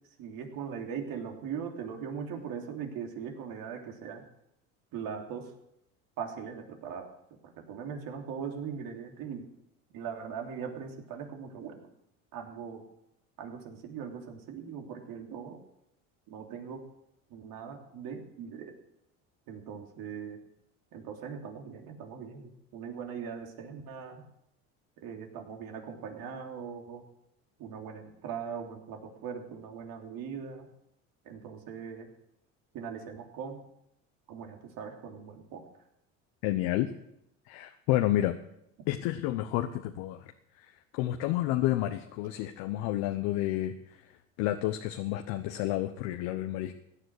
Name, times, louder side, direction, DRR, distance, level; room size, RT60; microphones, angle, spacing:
voice 1, 0.2-4.2 4.9-5.5 6.2-7.1 7.4-9.5 9.9-11.9 12.3-12.8 13.4-15.6 16.3-16.8 17.3-18.8 19.5-20.4 20.9-24.2 25.0-27.0 27.6-30.7 31.2-32.1 32.7-33.6 34.3-35.8, right 7 dB, 60° right, 2 dB, 3.2 m, -40 dB
voice 2, 36.4-36.9 37.5-38.3 38.9-40.3 40.6-44.1 44.4-46.7, left 14 dB, 70° left, 7 dB, 1.1 m, -30 dB
17.0 x 10.0 x 6.4 m, 0.79 s
hypercardioid pair, 80°, 38 cm